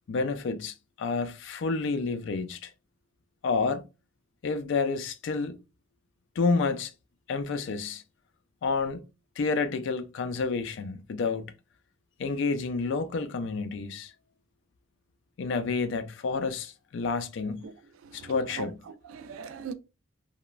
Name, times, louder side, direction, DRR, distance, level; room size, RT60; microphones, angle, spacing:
voice 1, 0.1-2.7 3.4-3.8 4.4-5.6 6.4-6.9 7.3-8.0 8.6-9.0 9.4-11.5 12.2-14.1 15.4-17.7 18.1-18.8, left 4 dB, 65° left, 0.3 m, -29 dB
voice 2, 18.0-19.7, right 6 dB, 85° right, 0.3 m, -41 dB
3.0 x 2.1 x 2.3 m
head